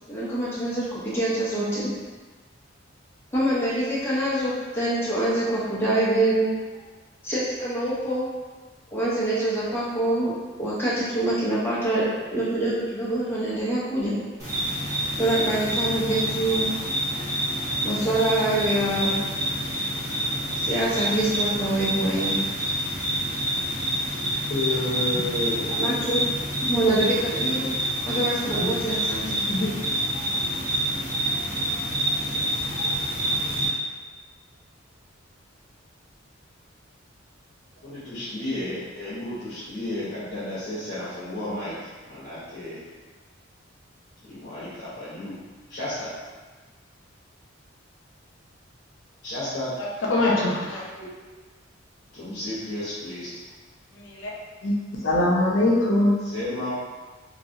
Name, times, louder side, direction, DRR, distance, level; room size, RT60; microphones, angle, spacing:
voice 1, 0.1-1.9 3.3-6.5 7.2-8.3 8.9-10.3 10.6-12.1 12.3-14.1 15.2-16.7 17.8-19.2 20.6-22.3 25.8-26.3 26.6-27.7 28.0-29.4 50.7-51.1, right 1 dB, 10° left, -9 dB, 0.9 m, -25 dB
sound 1, 14.4-33.7, right 1 dB, 15° right, 1.2 m, -27 dB
voice 2, 24.5-25.8 28.4-28.6 29.5-29.9 37.8-41.8 42.1-42.8 44.3-45.4 45.7-46.1 49.2-49.8 52.1-53.3 56.2-56.7, left 1 dB, 50° left, -13 dB, 1.0 m, -31 dB
voice 3, 49.8-50.8 53.9-54.3 54.6-54.8 55.0-56.2, left 1 dB, 70° left, -4 dB, 0.6 m, -22 dB
3.1 x 2.7 x 2.7 m, 1.3 s
head